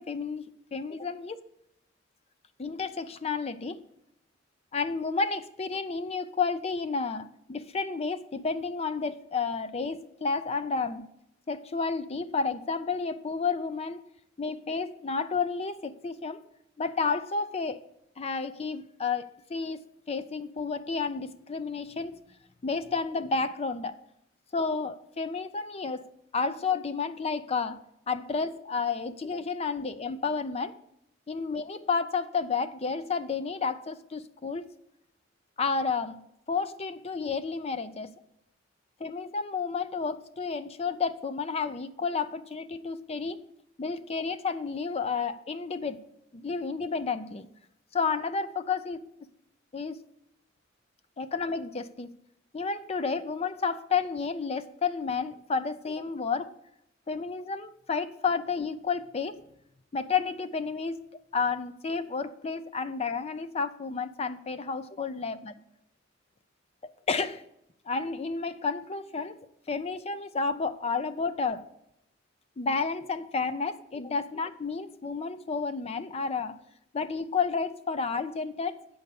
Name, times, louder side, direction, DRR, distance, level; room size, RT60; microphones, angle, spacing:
voice 1, 0.0-1.4 2.6-3.8 4.7-11.1 11.5-14.0 14.4-16.4 16.8-17.8 18.2-22.2 22.6-24.0 24.5-26.1 26.3-27.8 28.1-30.7 31.3-34.7 35.6-38.1 39.0-43.5 43.8-46.0 46.3-47.5 47.9-49.1 49.7-50.0 51.2-52.1 52.5-56.5 57.1-59.4 59.9-61.1 61.3-65.5 66.8-67.4 67.9-69.4 69.7-71.7 72.6-76.6 76.9-78.8, left 4 dB, 30° left, 12 dB, 0.5 m, -31 dB
7.8 x 5.5 x 6.8 m, 0.77 s
head